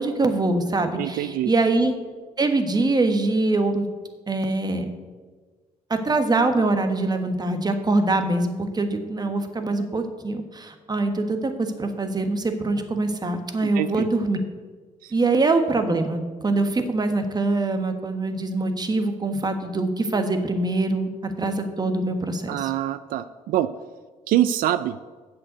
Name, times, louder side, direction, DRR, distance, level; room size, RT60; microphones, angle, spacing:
voice 1, 0.0-1.9 2.4-3.9 4.3-4.9 5.9-14.4 15.1-22.7, right 2 dB, 30° right, 7 dB, 1.4 m, -23 dB
voice 2, 1.0-1.5 13.6-14.1 15.0-15.1 22.5-23.7 24.3-25.0, right 12 dB, 90° right, 13 dB, 0.4 m, -24 dB
7.6 x 6.7 x 8.0 m, 1.4 s
cardioid pair, 80°, 14 cm